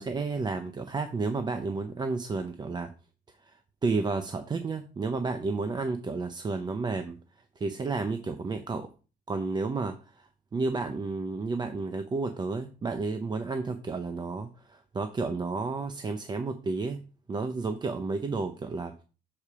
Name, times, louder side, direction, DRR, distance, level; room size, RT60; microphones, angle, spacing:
voice 1, 0.0-2.9 3.4-7.2 7.6-8.9 9.3-18.9, right 3 dB, 25° right, 7 dB, 0.6 m, -32 dB
6.8 x 4.3 x 4.9 m, 0.35 s
cardioid pair, 110°, 17 cm